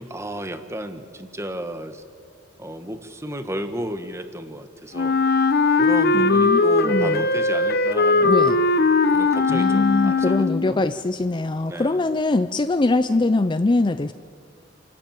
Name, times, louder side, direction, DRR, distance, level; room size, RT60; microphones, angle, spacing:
voice 1, 0.0-2.0 2.6-5.2 5.7-8.7 9.1-10.8 11.6-12.0 13.1-13.2, right 1 dB, 15° right, 8 dB, 1.2 m, -33 dB
Wind instrument woodwind instrument, 4.9-10.7, left 3 dB, 55° left, 0.9 m, -19 dB
voice 2, 6.1-7.3 8.2-8.6 9.5-14.1, left 2 dB, 25° left, 11 dB, 0.5 m, -22 dB
28.0 x 13.0 x 8.9 m, 2.2 s
head